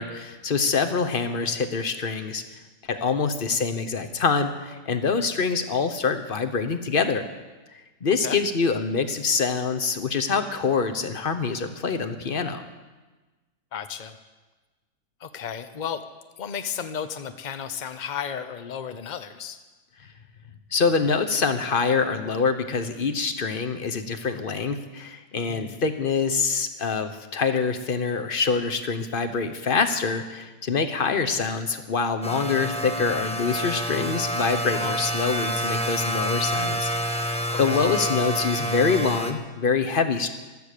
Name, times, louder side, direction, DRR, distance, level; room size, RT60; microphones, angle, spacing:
voice 1, 0.0-2.4 2.9-7.2 7.7-12.6 20.7-36.9 37.6-40.3, left 5 dB, 40° left, 8 dB, 1.0 m, -25 dB
voice 2, 13.7-14.2 15.2-16.0 16.4-19.6 25.5-25.8 34.7-35.0 37.7-37.8, left 8 dB, 70° left, 10 dB, 0.4 m, -33 dB
sound 1, 32.2-39.3, equal, 5° left, 0.7 m, -28 dB
15.5 x 12.5 x 6.7 m, 1.2 s
omnidirectional pair, 1.8 m